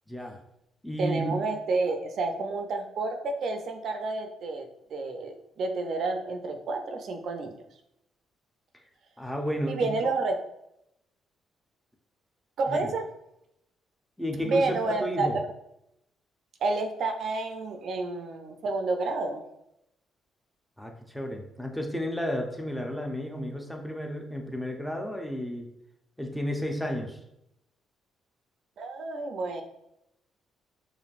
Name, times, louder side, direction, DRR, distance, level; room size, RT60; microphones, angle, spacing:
voice 1, 0.1-0.4 0.8-1.4 9.2-10.1 12.7-12.9 14.2-15.4 20.8-25.7 26.2-27.2, equal, ahead, 2 dB, 0.6 m, -32 dB
voice 2, 1.0-7.5 9.7-10.3 12.6-13.1 14.4-15.4 16.6-19.4 28.8-29.6, right 3 dB, 65° right, 5 dB, 0.4 m, -30 dB
4.9 x 2.6 x 2.4 m, 0.81 s
cardioid pair, 90°, 0 cm